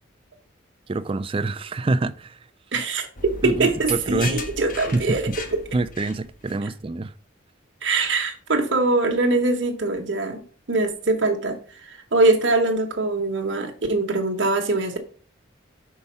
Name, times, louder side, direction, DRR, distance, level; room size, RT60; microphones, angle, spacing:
voice 1, 0.9-2.4 3.4-4.4 4.9-5.4 5.7-7.1, right 2 dB, 30° right, 0.4 m, -26 dB
voice 2, 2.7-5.6 7.8-10.4 10.7-15.0, right 2 dB, 65° right, 1.0 m, -23 dB
sound 1, 3.2-6.6, left 3 dB, 45° left, 1.0 m, -36 dB
5.6 x 4.7 x 5.4 m
head